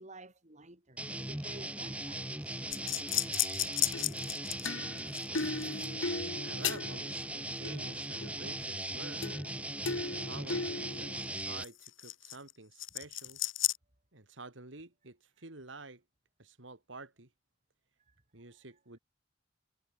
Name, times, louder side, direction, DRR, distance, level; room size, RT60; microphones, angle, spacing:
voice 1, 0.0-2.6, right 2 dB, 40° right, 6.1 m, -52 dB
sound 1, 1.0-11.6, right 1 dB, 5° right, 2.1 m, -39 dB
sound 2, 2.7-7.2 7.7-8.5 9.2-9.6 9.9-12.5 12.8-13.8, left 8 dB, 90° left, 2.7 m, -35 dB
voice 2, 6.4-9.2 10.2-13.4 14.1-16.0 16.4-17.3 18.3-19.0, right 3 dB, 75° right, 3.1 m, -49 dB
head